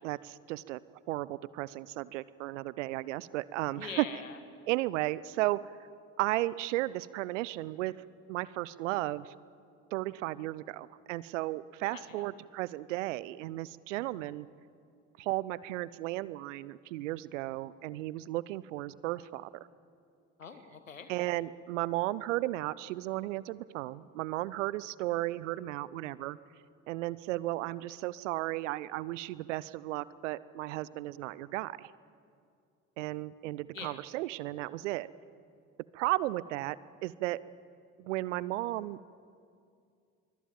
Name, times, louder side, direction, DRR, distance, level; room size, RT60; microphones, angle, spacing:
voice 1, 0.0-0.8 1.1-4.1 4.7-5.6 6.2-7.9 8.3-9.3 9.9-14.5 15.2-19.5 21.1-26.4 26.9-31.9 33.0-35.1 35.9-36.8 37.0-37.4 38.0-39.0, right 17 dB, 70° right, 20 dB, 0.7 m, -34 dB
voice 2, 3.8-4.4 11.8-12.2 20.4-21.1 33.7-34.0, left 6 dB, 85° left, 9 dB, 1.5 m, -44 dB
24.5 x 23.5 x 7.4 m, 2.3 s
figure-of-eight pair, 50°, 39 cm